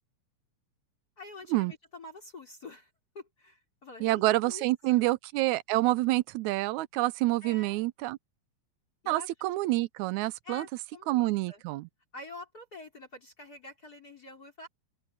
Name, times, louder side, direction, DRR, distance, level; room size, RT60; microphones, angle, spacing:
voice 1, 1.2-2.9 3.1-5.1 7.4-7.8 9.0-9.3 10.4-11.6 12.1-14.7, left 2 dB, 30° left, 4.9 m, -47 dB
voice 2, 4.0-8.2 9.1-10.7 11.1-11.9, right 19 dB, 80° right, 2.0 m, -27 dB
open air
omnidirectional pair, 3.4 m